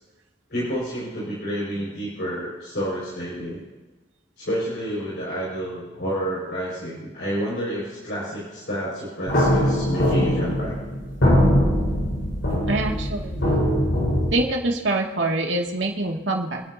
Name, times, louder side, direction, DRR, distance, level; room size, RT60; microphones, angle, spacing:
voice 1, 0.5-3.6 4.4-10.7, equal, 65° left, -8 dB, 5.4 m, -29 dB
sound 1, 9.3-14.3, equal, 85° left, 4.5 m, -21 dB
voice 2, 12.7-13.6 14.3-16.6, right 2 dB, 80° right, 0 dB, 2.3 m, -25 dB
27.5 x 10.5 x 2.8 m, 1.2 s
head